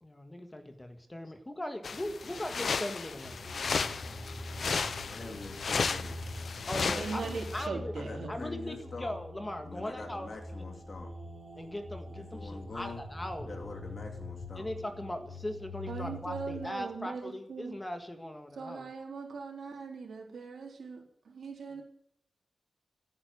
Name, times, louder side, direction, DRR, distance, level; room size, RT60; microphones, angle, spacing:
voice 1, 0.0-3.5 6.7-7.9 8.3-10.3 11.6-13.5 14.6-18.9, left 1 dB, 15° left, 6 dB, 1.7 m, -39 dB
sound 1, 1.8-7.7, left 5 dB, 55° left, 0.8 m, -34 dB
sound 2, 3.2-16.6, left 2 dB, 20° right, 5.7 m, -44 dB
voice 2, 5.0-6.2 6.8-7.3 7.9-9.1 9.6-11.1 12.1-13.0 13.4-14.7, left 3 dB, 40° left, 3 dB, 3.1 m, -45 dB
voice 3, 6.7-8.3 15.9-17.8 18.5-21.8, right 4 dB, 75° right, 1 dB, 3.7 m, -40 dB
16.0 x 9.5 x 9.4 m, 0.68 s
wide cardioid pair, 180°, 0 cm